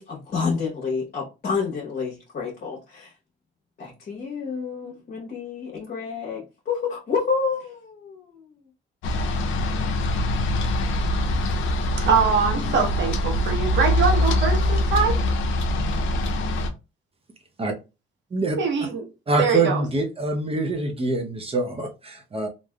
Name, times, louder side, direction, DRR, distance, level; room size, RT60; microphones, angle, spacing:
voice 1, 0.0-3.1 3.8-8.5, left 5 dB, 50° left, 1.0 m, -29 dB
sound 1, 9.0-16.7, left 1 dB, 80° left, 0.5 m, -23 dB
voice 2, 12.1-15.2 18.6-19.0 19.4-19.8, right 5 dB, 65° right, 1.0 m, -23 dB
voice 3, 19.3-22.5, right 3 dB, 30° right, 0.7 m, -25 dB
3.3 x 2.5 x 2.2 m
cardioid pair, 90°, 20 cm